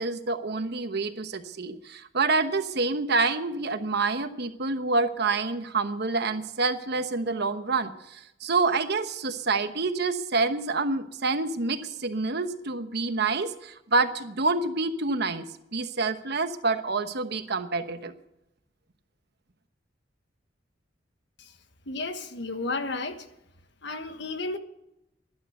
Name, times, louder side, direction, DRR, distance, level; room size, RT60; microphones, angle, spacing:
voice 1, 0.0-15.4 15.7-18.1, right 3 dB, 55° right, 9 dB, 1.1 m, -27 dB
voice 2, 21.9-23.3 23.8-24.6, left 3 dB, 65° left, 8 dB, 1.4 m, -32 dB
12.0 x 11.5 x 7.9 m, 0.85 s
head